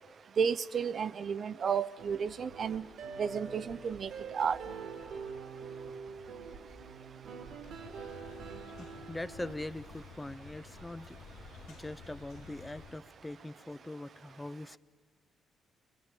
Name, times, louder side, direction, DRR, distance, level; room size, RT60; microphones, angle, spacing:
voice 1, 0.4-2.9 3.2-4.6, right 6 dB, 50° right, 14 dB, 0.7 m, -32 dB
sound 1, 2.0-9.5, right 5 dB, 75° right, 2.5 m, -45 dB
sound 2, 7.6-13.0, left 5 dB, 75° left, 1.7 m, -52 dB
voice 2, 8.8-14.8, left 2 dB, 15° left, 14 dB, 0.7 m, -42 dB
23.5 x 21.0 x 9.1 m, 1.6 s
cardioid pair, 90°, 0 cm